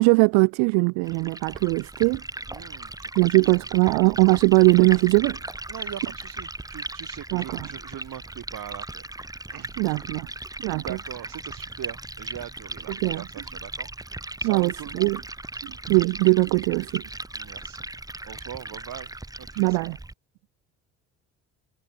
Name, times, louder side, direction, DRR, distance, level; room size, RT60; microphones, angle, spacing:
voice 1, 0.0-2.2 3.2-5.4 7.3-7.4 9.8-10.3 10.6-10.8 13.0-13.2 14.4-14.7 15.0-15.2 15.6-17.0 19.6-20.0, right 34 dB, 80° right, 0.8 m, -20 dB
Liquid, 1.0-20.1, right 2 dB, 10° right, 1.6 m, -37 dB
voice 2, 2.5-3.4 5.7-9.1 9.5-10.0 10.8-15.1 17.3-17.9 18.2-19.1 19.4-19.9, right 11 dB, 60° right, 2.7 m, -41 dB
hypercardioid pair, 55°, 38 cm